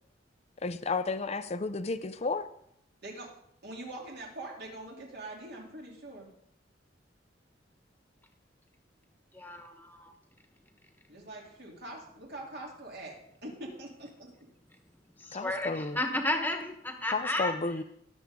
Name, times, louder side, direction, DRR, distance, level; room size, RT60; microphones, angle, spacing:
voice 1, 0.6-2.5 15.3-16.0 17.1-17.8, left 3 dB, 35° left, 12 dB, 0.6 m, -32 dB
voice 2, 3.6-6.3 11.1-13.1 13.4-14.5, right 2 dB, 60° right, -1 dB, 3.4 m, -43 dB
voice 3, 9.3-10.1 14.7-14.8 15.2-17.8, left 1 dB, 10° left, 4 dB, 1.4 m, -33 dB
18.5 x 7.3 x 3.8 m, 0.73 s
head